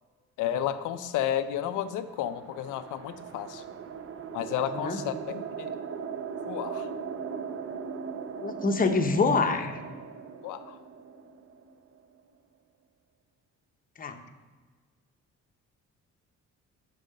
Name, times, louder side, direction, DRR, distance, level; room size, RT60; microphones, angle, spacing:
voice 1, 0.4-3.6 4.3-5.8 6.4-6.9 10.4-10.8, left 10 dB, 85° left, 11 dB, 0.5 m, -32 dB
sound 1, 1.8-12.2, right 6 dB, 45° right, 0.6 m, -39 dB
voice 2, 8.4-9.8 14.0-14.2, left 4 dB, 30° left, 6 dB, 0.7 m, -26 dB
5.4 x 5.2 x 6.5 m, 1.5 s
cardioid pair, 90°, 30 cm